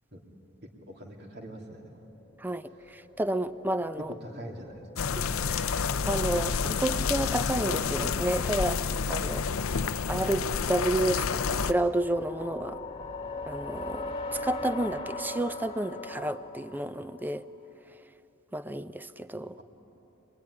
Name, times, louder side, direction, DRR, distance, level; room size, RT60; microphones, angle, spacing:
voice 1, 0.6-2.1 4.0-5.4, right 1 dB, 55° right, 2 dB, 3.1 m, -43 dB
sound 1, 2.2-17.4, left 2 dB, 25° left, 1.5 m, -42 dB
voice 2, 2.4-4.1 5.5-9.5 10.1-12.8 13.5-17.5 18.5-19.6, right 1 dB, 10° right, 12 dB, 0.6 m, -31 dB
sound 2, 5.0-11.7, left 6 dB, 85° left, 0.6 m, -29 dB
27.0 x 21.5 x 9.9 m, 3.0 s
head